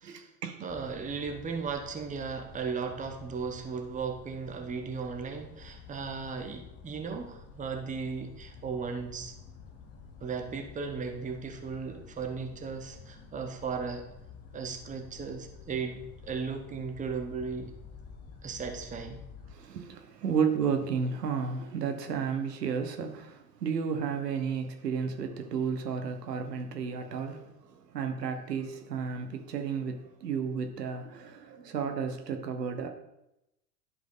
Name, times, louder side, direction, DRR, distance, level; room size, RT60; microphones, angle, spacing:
voice 1, 0.0-1.0 19.5-27.5 27.9-32.9, right 6 dB, 85° right, 1.3 m, -32 dB
voice 2, 0.6-9.3 10.2-14.1 14.5-17.7 18.4-19.2, right 5 dB, 15° right, 1.0 m, -36 dB
sound 1, 0.7-19.6, left 5 dB, 30° left, 1.4 m, -50 dB
11.5 x 5.1 x 3.9 m
hypercardioid pair, 100°, 47 cm